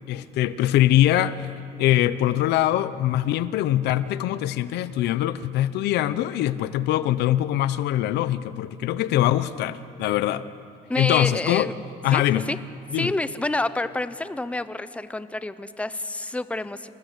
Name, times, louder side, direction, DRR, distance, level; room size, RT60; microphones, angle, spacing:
voice 1, 0.1-1.5 1.8-10.4 11.0-11.7 12.0-12.4 12.9-13.1, left 13 dB, 80° left, 15 dB, 0.8 m, -23 dB
voice 2, 10.9-11.7 12.1-12.2 12.5-12.6 13.0-16.9, left 2 dB, 5° left, 13 dB, 0.8 m, -28 dB
26.5 x 19.5 x 8.1 m, 2.8 s
cardioid pair, 110°, 17 cm